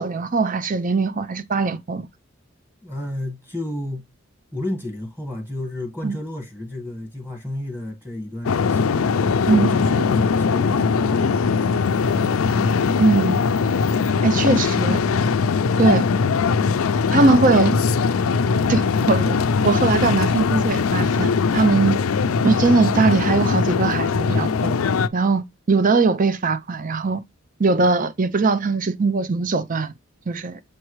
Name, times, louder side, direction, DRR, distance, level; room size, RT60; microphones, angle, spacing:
voice 1, 0.0-2.1 6.0-6.2 9.5-9.7 13.0-13.4 14.2-15.0 15.8-16.1 17.1-17.8 18.7-19.4 19.6-22.0 22.4-24.8 25.1-27.2 27.6-29.9 30.3-30.6, right 3 dB, 40° right, 0.6 m, -20 dB
voice 2, 2.8-4.1 4.5-8.9 9.4-11.8 14.3-14.6, left 1 dB, 10° right, 1.6 m, -31 dB
sound 1, 8.4-25.1, left 5 dB, 90° left, 0.5 m, -20 dB
7.2 x 4.5 x 3.1 m
head